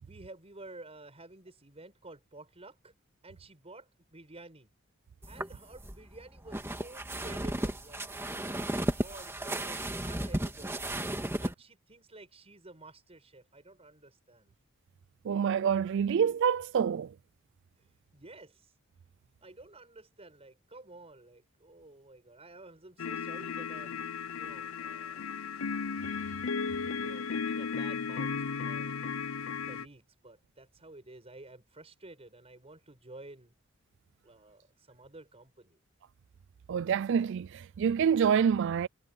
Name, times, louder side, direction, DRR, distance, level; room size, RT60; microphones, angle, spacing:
voice 1, 0.0-2.9 3.2-4.7 5.3-8.0 8.4-10.8 11.3-14.5 17.8-18.7 19.4-24.1 24.3-25.2 26.9-29.0 29.7-33.5 34.2-35.8, right 2 dB, 30° right, 5.9 m, -52 dB
sound 1, 5.2-11.5, right 1 dB, 10° right, 1.8 m, -34 dB
voice 2, 15.2-17.1 36.7-38.9, right 7 dB, 60° right, 0.3 m, -27 dB
sound 2, 23.0-29.9, left 5 dB, 75° left, 0.6 m, -35 dB
head